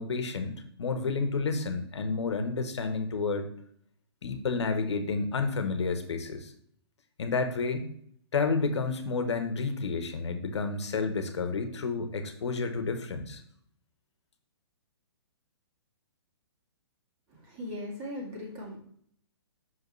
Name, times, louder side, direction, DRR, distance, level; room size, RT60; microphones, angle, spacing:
voice 1, 0.0-3.5 4.2-6.5 7.2-7.9 8.3-13.4, left 4 dB, 80° left, 7 dB, 1.0 m, -30 dB
voice 2, 17.3-18.8, left 1 dB, 30° right, -2 dB, 2.1 m, -39 dB
5.8 x 5.1 x 3.1 m, 0.63 s
hypercardioid pair, 140°, 14 cm